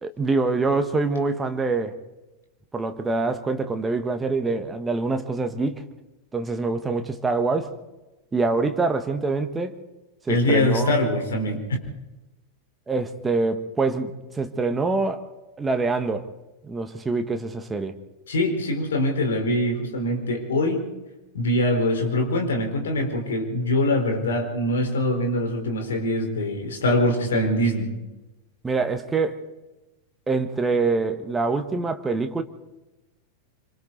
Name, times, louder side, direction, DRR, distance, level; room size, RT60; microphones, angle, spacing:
voice 1, 0.0-1.9 2.7-5.8 6.3-7.7 8.3-9.8 10.2-11.0 12.9-15.2 15.6-16.3 16.6-18.0 28.6-29.4 30.3-32.4, right 3 dB, 15° right, 7 dB, 1.5 m, -25 dB
voice 2, 10.3-11.6 18.3-20.9 21.3-27.9, left 1 dB, 65° left, 3 dB, 4.4 m, -23 dB
26.5 x 25.5 x 4.1 m, 1.1 s
figure-of-eight pair, 90°, 0 cm